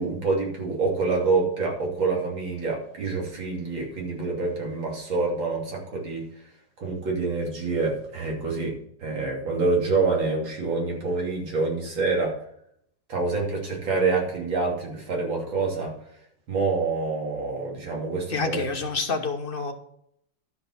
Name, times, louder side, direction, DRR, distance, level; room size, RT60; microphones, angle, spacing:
voice 1, 0.0-6.2 6.8-8.7 9.0-12.4 13.1-15.9 16.5-18.6, right 3 dB, 85° right, -1 dB, 3.6 m, -26 dB
voice 2, 18.3-19.7, left 4 dB, 35° left, 5 dB, 1.1 m, -28 dB
12.0 x 5.2 x 5.8 m, 0.69 s
omnidirectional pair, 2.0 m